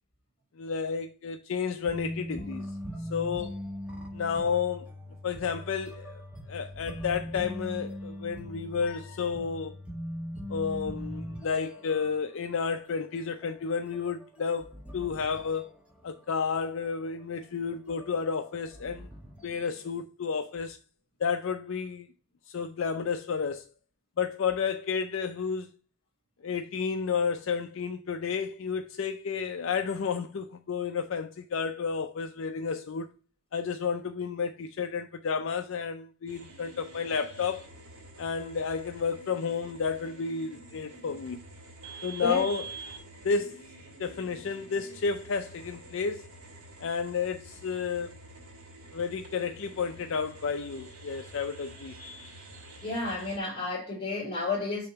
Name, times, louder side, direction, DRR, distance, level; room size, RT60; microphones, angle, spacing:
voice 1, 0.6-2.7 3.1-3.6 4.1-4.9 5.2-6.2 6.5-9.8 10.5-15.7 16.0-19.1 19.4-20.8 21.2-22.1 22.5-23.7 24.2-25.7 26.4-33.1 33.5-37.6 38.2-41.4 42.0-42.7 43.2-43.7 44.0-46.3 46.8-48.1 48.9-52.0, left 5 dB, 60° left, 0.4 m, -31 dB
sound 1, 1.8-12.1 12.3-12.6 12.9-13.0 13.4-16.1 16.4-16.9 17.4-17.5 17.9-19.8, equal, 5° right, 1.4 m, -40 dB
sound 2, 36.3-53.4, right 2 dB, 85° right, 1.9 m, -48 dB
voice 2, 52.8-54.9, left 3 dB, 25° left, 2.8 m, -31 dB
6.8 x 2.9 x 5.5 m
head